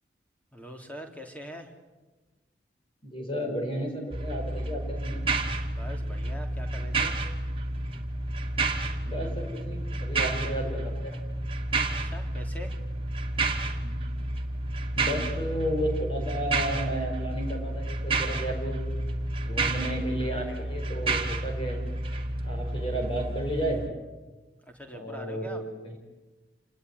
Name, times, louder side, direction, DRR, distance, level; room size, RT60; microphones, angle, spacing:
voice 1, 0.5-1.7 5.7-7.2 12.0-12.7 24.6-25.6, equal, 10° left, 3 dB, 3.3 m, -43 dB
voice 2, 3.0-5.3 9.0-11.2 13.8-14.0 14.9-18.8 19.4-21.8 22.4-23.8 24.9-26.0, right 1 dB, 30° left, 2 dB, 4.8 m, -33 dB
sound 1, 4.1-23.9, right 2 dB, 30° right, 2.4 m, -30 dB
28.0 x 20.0 x 9.6 m, 1.2 s
head